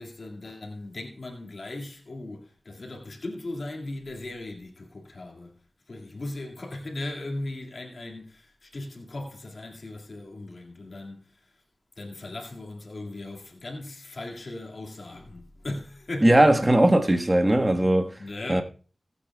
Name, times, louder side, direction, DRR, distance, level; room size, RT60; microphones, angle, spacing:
voice 1, 0.0-11.6 12.0-16.7 18.2-18.6, left 2 dB, 65° left, 2.1 m, -38 dB
voice 2, 16.2-18.1 18.5-18.6, right 1 dB, 25° right, 1.3 m, -19 dB
19.5 x 8.4 x 2.3 m
cardioid pair, 45°, 0 cm